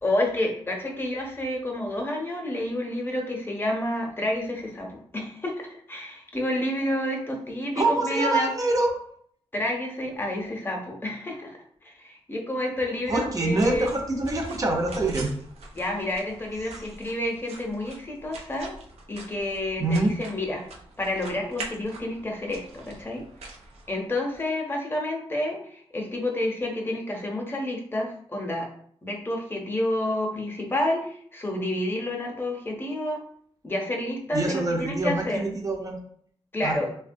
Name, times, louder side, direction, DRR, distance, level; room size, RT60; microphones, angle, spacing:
voice 1, 0.0-8.5 9.5-13.9 15.7-18.7 19.1-20.7 21.0-23.2 23.9-28.7 29.0-33.2 33.6-35.4 36.5-36.9, left 1 dB, 20° left, 1 dB, 0.7 m, -29 dB
voice 2, 7.8-8.9 13.1-15.3 16.7-16.8 19.8-20.1 34.3-36.0 36.6-36.8, right 2 dB, 35° right, 2 dB, 0.6 m, -25 dB
sound 1, 13.1-24.4, right 3 dB, 85° right, 0.5 m, -44 dB
3.0 x 2.2 x 2.6 m, 0.62 s
cardioid pair, 80°, 10 cm